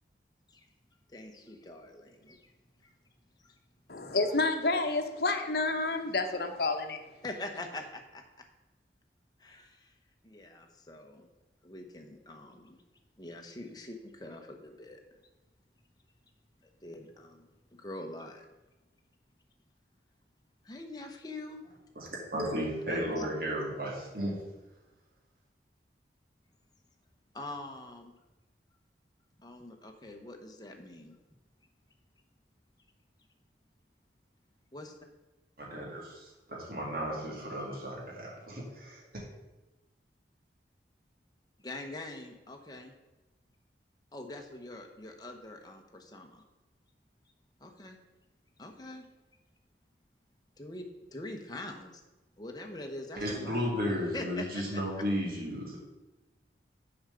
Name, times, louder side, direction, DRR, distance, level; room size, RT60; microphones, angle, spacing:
voice 1, 1.1-2.5 2.8-2.9 3.4-3.5 7.2-8.2 9.4-9.9 10.2-11.3 11.6-12.8 13.2-15.0 16.6-18.5 20.6-21.6 22.9-23.3 27.3-28.1 29.4-31.2 34.7-34.9 41.6-42.9 44.1-46.4 47.6-48.0 48.6-49.1 50.6-50.8 51.1-52.0 52.4-53.6 54.1-54.8, left 2 dB, 25° left, 3 dB, 1.0 m, -44 dB
voice 2, 3.9-7.0, left 3 dB, 60° left, 5 dB, 0.9 m, -29 dB
voice 3, 22.0-24.3 35.7-36.0 36.5-39.2 53.2-55.8, equal, 55° right, -3 dB, 2.2 m, -34 dB
7.0 x 5.0 x 6.9 m, 1.1 s
head